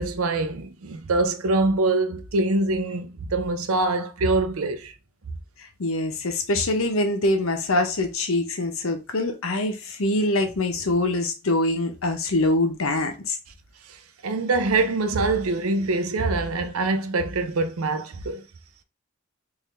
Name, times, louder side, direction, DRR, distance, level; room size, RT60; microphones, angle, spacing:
voice 1, 0.0-4.9 14.2-18.4, right 2 dB, 85° right, 0.6 m, -24 dB
voice 2, 5.8-13.4, left 2 dB, 80° left, 0.8 m, -24 dB
3.7 x 2.6 x 3.2 m
head